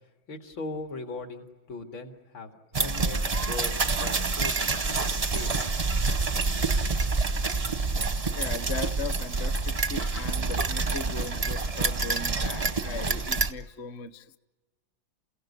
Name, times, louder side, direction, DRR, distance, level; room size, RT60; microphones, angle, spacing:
voice 1, 0.3-3.7 4.0-5.5, left 3 dB, 80° left, 5 dB, 3.0 m, -39 dB
sound 1, 2.7-13.5, right 3 dB, 40° right, 0.5 m, -27 dB
voice 2, 8.0-14.4, left 4 dB, 45° left, 13 dB, 0.9 m, -38 dB
29.5 x 16.5 x 9.7 m, 1.3 s
omnidirectional pair, 2.1 m